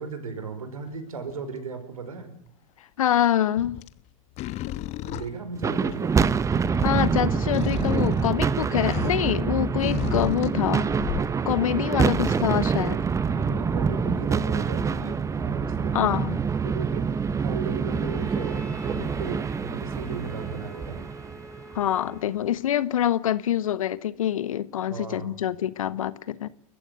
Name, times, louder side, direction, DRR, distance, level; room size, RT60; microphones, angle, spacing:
voice 1, 0.0-2.4 5.0-6.1 12.0-12.4 13.2-16.0 16.6-21.1 24.9-25.5, right 5 dB, 80° right, 5.2 m, -36 dB
sound 1, 0.9-1.3 3.6-4.0 4.4-6.2 6.5-9.3 9.8-11.5 12.2-12.5 13.2-13.3, left 14 dB, 40° left, 1.2 m, -34 dB
voice 2, 3.0-3.8 6.8-10.9 11.4-13.0 15.9-16.4 21.7-26.5, left 11 dB, 70° left, 1.2 m, -25 dB
sound 2, 5.5-21.9, right 6 dB, 15° right, 1.0 m, -26 dB
Bowed string instrument, 17.9-22.5, left 1 dB, 5° left, 2.3 m, -47 dB
30.0 x 15.0 x 9.4 m
figure-of-eight pair, 95°, 18 cm